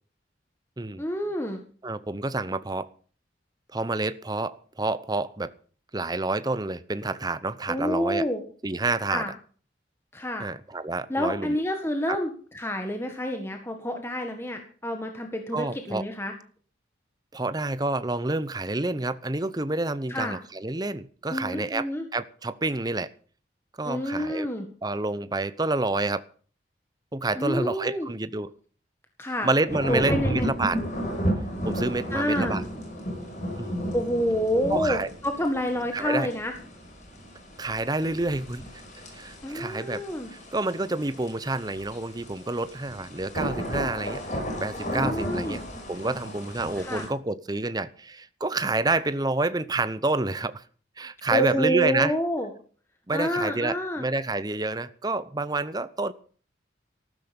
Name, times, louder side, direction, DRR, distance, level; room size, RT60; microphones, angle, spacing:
voice 1, 1.0-1.6 7.7-8.4 9.1-9.3 10.1-10.5 11.1-16.3 20.1-20.4 21.3-22.0 23.9-24.7 27.4-28.1 29.2-29.5 29.9-30.5 32.1-32.6 33.9-36.5 39.4-40.3 44.9-45.6 46.8-47.1 51.3-52.5 53.1-54.0, equal, 15° left, 4 dB, 1.7 m, -28 dB
voice 2, 1.8-2.9 3.7-5.5 5.9-8.2 8.6-9.2 10.4-11.6 12.1-12.2 15.5-16.0 17.3-23.1 23.8-24.5 24.8-26.2 27.1-28.5 29.3-30.8 31.6-32.6 33.6-33.8 34.7-35.1 35.9-36.3 37.6-38.6 39.1-40.0 40.3-44.2 44.6-45.6 45.9-50.6 51.0-52.1 53.1-56.1, right 2 dB, 20° right, 14 dB, 0.8 m, -28 dB
sound 1, 29.7-47.1, equal, 40° left, 5.6 m, -33 dB
14.5 x 12.5 x 5.3 m, 0.43 s
head